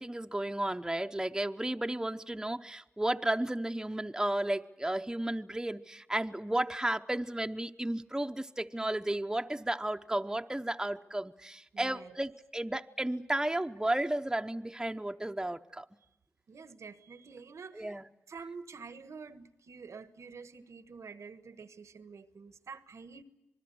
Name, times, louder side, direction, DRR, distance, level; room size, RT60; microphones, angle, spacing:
voice 1, 0.0-15.9 17.8-18.0, right 1 dB, 10° right, 0.8 m, -33 dB
voice 2, 11.7-12.2 16.5-18.0 18.3-23.2, right 5 dB, 85° right, 1.3 m, -48 dB
27.0 x 20.0 x 7.8 m
cardioid pair, 55°, 5 cm